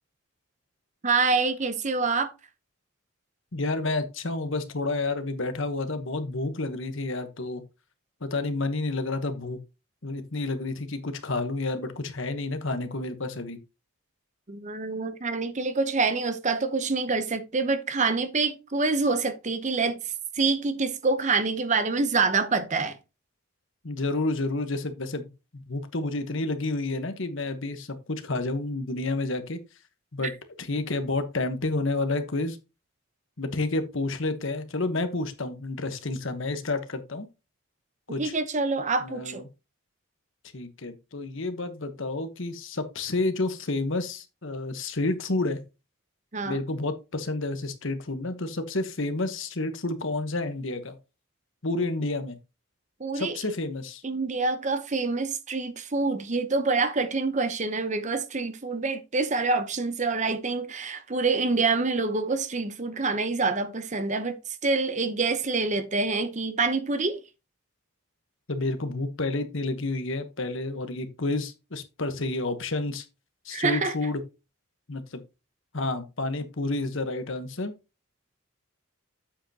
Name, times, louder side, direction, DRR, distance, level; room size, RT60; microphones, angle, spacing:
voice 1, 1.0-2.3 14.5-23.0 30.2-30.3 38.2-39.4 46.3-46.6 53.0-53.4 54.0-67.2 73.5-73.9, right 4 dB, 35° right, 0.8 m, -26 dB
voice 2, 3.5-7.6 8.2-9.6 10.0-13.6 23.8-29.6 30.1-30.3 30.6-32.6 33.4-37.3 38.1-38.3 39.0-39.4 40.5-45.6 46.4-51.0 51.6-52.4 53.1-54.0 68.5-73.1 73.4-74.2 74.9-75.2 75.7-77.7, left 2 dB, 60° left, 1.1 m, -30 dB
8.6 x 7.7 x 2.8 m
head